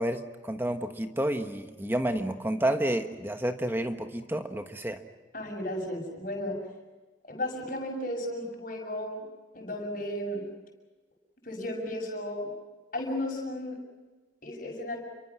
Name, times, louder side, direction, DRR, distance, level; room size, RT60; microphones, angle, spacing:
voice 1, 0.0-5.0, right 1 dB, 10° right, 6 dB, 1.3 m, -30 dB
voice 2, 5.3-6.6 7.2-9.3 9.5-10.4 11.4-12.5 12.9-13.8 14.4-15.0, left 1 dB, 45° left, 1 dB, 6.7 m, -34 dB
29.0 x 24.0 x 6.2 m, 1.2 s
head